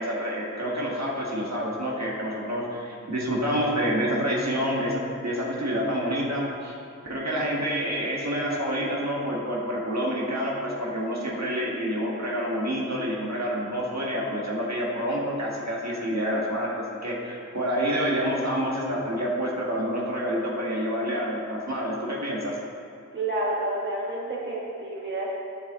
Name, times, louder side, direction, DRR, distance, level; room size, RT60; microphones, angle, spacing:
voice 1, 0.0-6.8 7.1-22.5, equal, 60° right, -4 dB, 1.7 m, -28 dB
voice 2, 23.1-25.3, right 1 dB, 35° right, -5 dB, 1.3 m, -29 dB
11.0 x 6.7 x 3.7 m, 2.5 s
wide cardioid pair, 60°, 31 cm